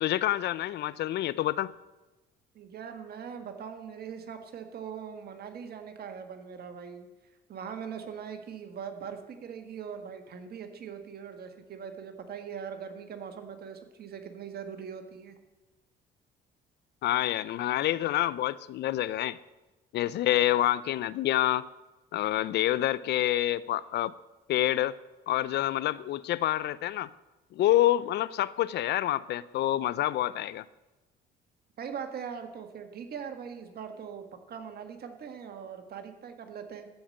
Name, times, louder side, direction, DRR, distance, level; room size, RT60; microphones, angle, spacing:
voice 1, 0.0-1.7 17.0-19.4 19.9-21.6 22.1-24.1 24.5-25.0 25.3-27.1 27.5-30.6, left 13 dB, 65° left, 19 dB, 0.5 m, -27 dB
voice 2, 2.5-7.1 7.5-15.4 31.8-36.9, right 7 dB, 55° right, 6 dB, 1.7 m, -41 dB
14.0 x 5.0 x 7.8 m, 1.1 s
supercardioid pair, 85°, 19 cm